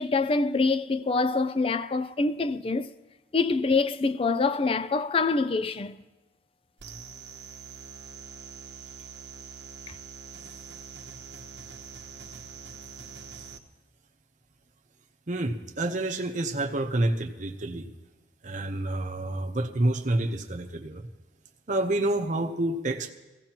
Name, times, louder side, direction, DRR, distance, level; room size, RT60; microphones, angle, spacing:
voice 1, 0.0-2.9 3.3-5.9, left 3 dB, 30° left, 0.4 m, -25 dB
sound 1, 6.8-13.6, right 6 dB, 80° right, 0.9 m, -44 dB
voice 2, 15.3-17.9 18.4-21.1 21.7-23.1, right 1 dB, 45° right, 0.9 m, -28 dB
19.5 x 15.5 x 3.0 m
head